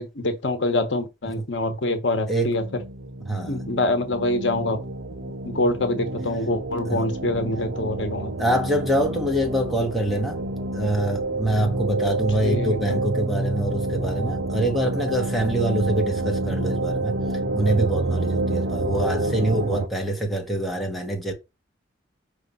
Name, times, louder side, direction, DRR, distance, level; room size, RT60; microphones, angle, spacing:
voice 1, 0.0-2.8 3.5-4.8 5.4-8.3 12.4-13.0, left 2 dB, 70° left, 1.1 m, -25 dB
sound 1, 2.5-19.9, right 2 dB, 70° right, 0.9 m, -28 dB
voice 2, 3.2-3.6 6.9-7.0 8.4-10.4 10.7-17.2 17.5-21.3, right 1 dB, ahead, 1.5 m, -25 dB
5.7 x 3.3 x 5.6 m
head